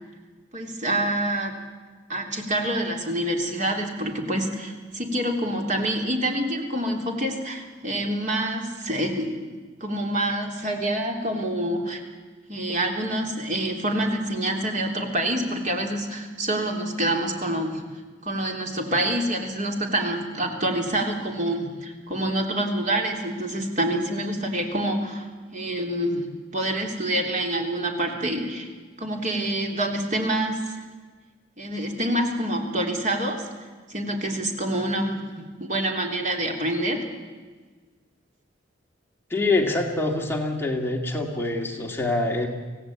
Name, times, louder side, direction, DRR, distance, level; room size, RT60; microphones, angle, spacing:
voice 1, 0.5-1.5 2.1-9.3 9.8-12.0 12.5-17.8 18.2-25.3 25.5-26.3 26.5-28.7 29.0-30.8 31.6-33.4 33.9-37.0, right 1 dB, 40° right, 2 dB, 3.4 m, -27 dB
voice 2, 39.3-42.5, left 2 dB, 10° left, 0 dB, 2.1 m, -25 dB
26.0 x 17.0 x 8.7 m, 1.4 s
head